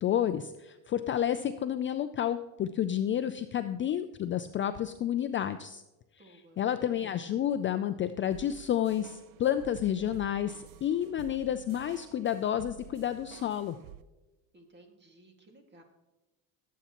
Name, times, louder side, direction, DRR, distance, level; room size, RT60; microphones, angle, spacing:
voice 1, 0.0-5.8 6.6-13.8, left 10 dB, 30° left, 10 dB, 0.4 m, -30 dB
voice 2, 6.2-6.6 14.5-15.8, right 1 dB, 25° right, 4 dB, 2.0 m, -57 dB
sound 1, 8.3-14.0, right 10 dB, 55° right, 0.6 m, -51 dB
17.5 x 8.3 x 3.0 m, 1.1 s
cardioid pair, 120°, 40 cm